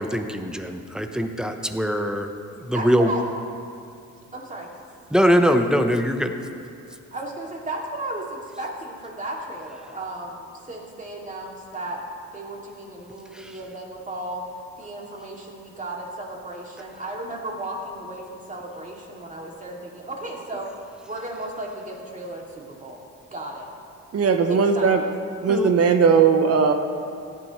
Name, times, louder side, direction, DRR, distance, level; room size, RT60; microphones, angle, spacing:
voice 1, 0.0-2.3 2.7-3.1 5.1-6.3 13.3-13.5 25.5-25.7, equal, ahead, 6 dB, 0.9 m, -22 dB
voice 2, 2.7-3.2 4.3-4.7 7.1-12.0 12.3-14.5 14.8-20.7 21.0-23.0 23.3-23.7 24.5-24.9, right 2 dB, 25° right, -2 dB, 2.5 m, -34 dB
voice 3, 24.1-25.0 25.4-26.7, right 6 dB, 50° right, 6 dB, 0.9 m, -18 dB
16.5 x 11.0 x 3.2 m, 2.5 s
cardioid pair, 90°, 30 cm